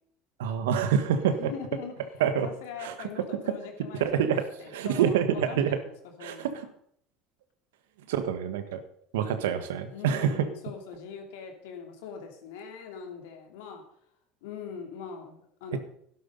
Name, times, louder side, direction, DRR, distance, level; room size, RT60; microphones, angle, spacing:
voice 1, 0.4-1.5 2.2-2.5 2.8-3.1 4.0-5.8 6.2-6.7 8.1-8.8 9.1-10.5 15.7-15.8, right 8 dB, 80° right, 10 dB, 1.5 m, -27 dB
voice 2, 1.1-2.0 2.4-6.5 9.9-13.8 14.4-15.8, left 7 dB, 80° left, 4 dB, 2.8 m, -42 dB
11.5 x 11.5 x 5.4 m, 0.67 s
hypercardioid pair, 80°, 0 cm